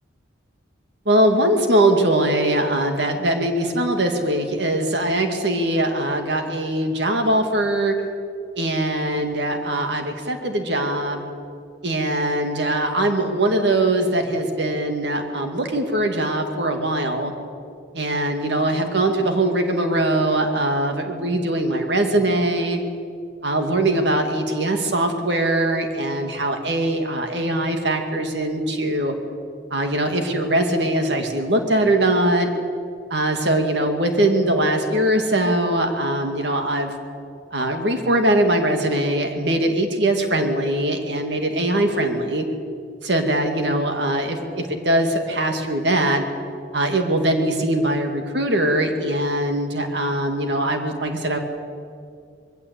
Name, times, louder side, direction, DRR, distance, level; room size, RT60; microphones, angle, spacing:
voice 1, 1.1-7.9 8.6-11.2 11.8-17.3 17.9-22.8 23.4-29.1 29.7-32.5 33.1-36.9 37.5-42.4 43.0-46.2 46.7-51.4, right 1 dB, 65° right, 5 dB, 2.2 m, -21 dB
21.5 x 16.0 x 8.4 m, 2.4 s
head